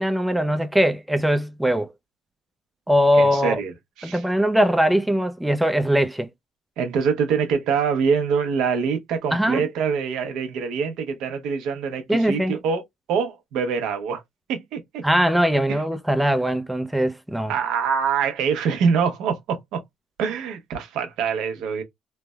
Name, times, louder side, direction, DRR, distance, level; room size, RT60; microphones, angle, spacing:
voice 1, 0.0-1.9 2.9-3.6 4.0-6.3 9.3-9.6 12.1-12.6 15.0-17.5, equal, 5° right, 0.4 m, -21 dB
voice 2, 3.1-3.7 4.0-4.2 6.8-12.8 13.1-14.2 14.5-15.0 17.5-19.8 20.2-21.8, right 6 dB, 75° right, 0.9 m, -24 dB
3.2 x 2.1 x 2.2 m
cardioid pair, 110°, 0 cm